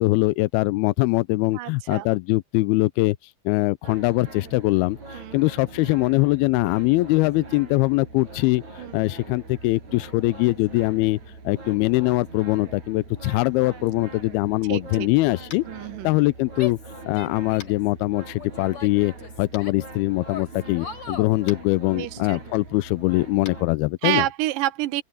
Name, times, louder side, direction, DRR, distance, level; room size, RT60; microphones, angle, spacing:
voice 1, 0.0-3.2 3.5-8.6 8.9-11.2 11.5-15.7 16.0-16.8 17.1-24.3, left 21 dB, 85° left, 2.5 m, -22 dB
voice 2, 1.5-2.1 5.1-5.4 8.8-9.0 14.7-15.1 15.7-16.1 21.9-22.4 24.0-25.0, right 15 dB, 70° right, 2.6 m, -28 dB
sound 1, 3.8-23.6, right 3 dB, 50° right, 7.4 m, -42 dB
Tap, 15.5-15.7 17.6-17.8 19.5-19.6 21.4-21.6 23.4-23.6, left 7 dB, 60° left, 3.8 m, -42 dB
Female speech woman speaking / Yell, 16.6-17.9 18.4-19.9 20.3-21.3, left 7 dB, 35° left, 4.6 m, -38 dB
open air
omnidirectional pair, 4.5 m